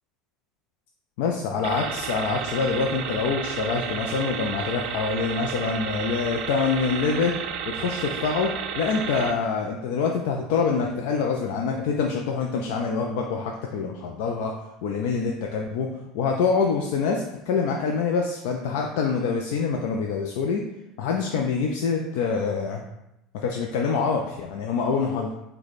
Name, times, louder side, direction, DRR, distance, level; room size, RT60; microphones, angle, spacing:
voice 1, 1.2-7.3 7.7-14.5 14.8-15.9 16.1-20.6 21.0-22.8 23.4-25.3, left 5 dB, 75° left, 1 dB, 0.4 m, -25 dB
sound 1, 1.6-9.3, right 7 dB, 65° right, 0.4 m, -32 dB
4.8 x 2.2 x 4.0 m, 0.88 s
supercardioid pair, 95°, 0 cm